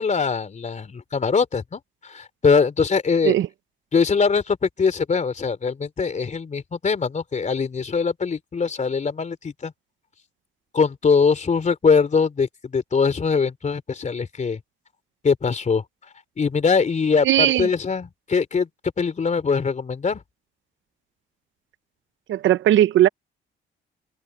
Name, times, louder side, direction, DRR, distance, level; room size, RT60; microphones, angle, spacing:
voice 1, 0.0-3.3 3.9-9.7 10.7-14.6 15.2-15.8 16.4-18.7 19.0-20.2, left 5 dB, 35° left, 3.4 m, -22 dB
voice 2, 17.2-17.7 22.3-23.1, right 12 dB, 75° right, 0.7 m, -17 dB
cardioid pair, 90°, 20 cm